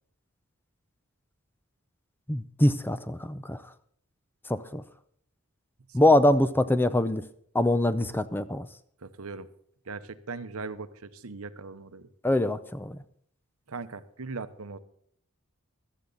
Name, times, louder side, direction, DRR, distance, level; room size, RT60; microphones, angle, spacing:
voice 1, 2.3-3.7 4.5-4.8 5.9-7.3 7.5-8.7 12.2-13.0, left 1 dB, 10° left, 13 dB, 0.6 m, -24 dB
voice 2, 9.0-9.5 9.9-12.1 13.7-14.8, right 4 dB, 70° right, 12 dB, 0.9 m, -39 dB
17.0 x 13.0 x 4.0 m, 0.64 s
head